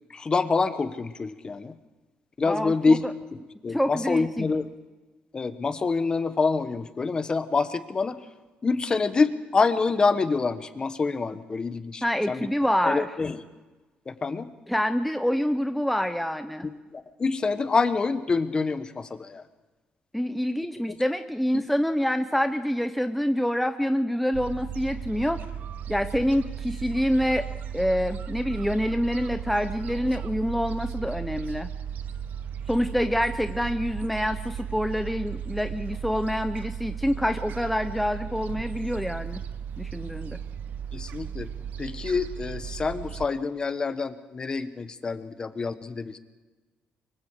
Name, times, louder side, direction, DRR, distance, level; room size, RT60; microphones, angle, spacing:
voice 1, 0.1-1.8 2.4-4.7 5.3-8.2 8.6-12.5 12.8-13.4 14.1-14.5 16.6-19.4 20.9-21.0 21.5-21.7 40.9-41.5 41.8-46.2, left 4 dB, 25° left, 11 dB, 1.2 m, -26 dB
voice 2, 2.5-3.0 3.7-4.5 12.0-13.1 14.7-16.7 20.1-25.4 25.9-27.4 27.7-31.7 32.7-39.4 39.8-40.4, equal, ahead, 8 dB, 0.7 m, -26 dB
Gull seagull, 24.3-43.3, right 8 dB, 65° right, 0.8 m, -36 dB
24.5 x 23.0 x 4.9 m, 1.2 s
cardioid pair, 130°, 3 cm